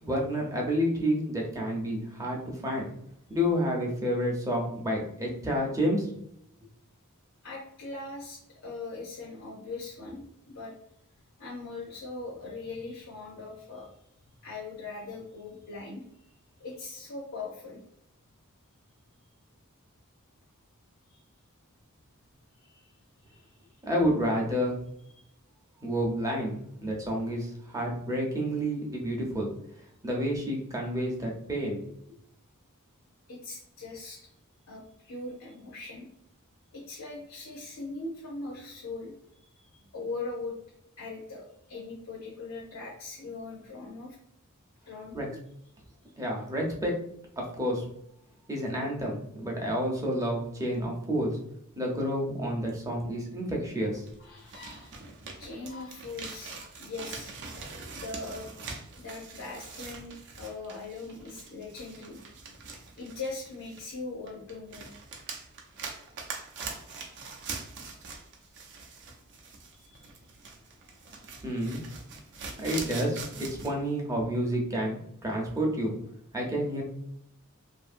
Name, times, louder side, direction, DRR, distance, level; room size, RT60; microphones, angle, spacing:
voice 1, 0.0-2.9 3.3-6.1 23.8-24.7 25.8-29.5 30.0-31.8 45.1-45.2 46.2-46.9 47.4-47.8 48.5-51.3 51.7-54.0 71.4-71.8 72.6-75.9 76.3-76.8, equal, 15° right, -1 dB, 0.6 m, -29 dB
voice 2, 7.4-10.7 11.4-13.9 14.4-16.3 16.6-17.8 21.1-21.2 22.6-22.9 23.2-23.7 25.1-25.2 33.3-34.2 34.7-36.1 36.7-39.1 39.6-40.6 41.0-44.2 44.9-45.4 54.2-55.0 55.4-57.3 57.9-58.5 59.0-62.2 63.0-64.9 67.0-67.1 69.8-70.1, left 3 dB, 65° left, -3 dB, 0.7 m, -40 dB
sound 1, 54.1-64.0 64.3-73.7, right 4 dB, 55° right, 0.5 m, -43 dB
2.7 x 2.6 x 2.5 m, 0.73 s
head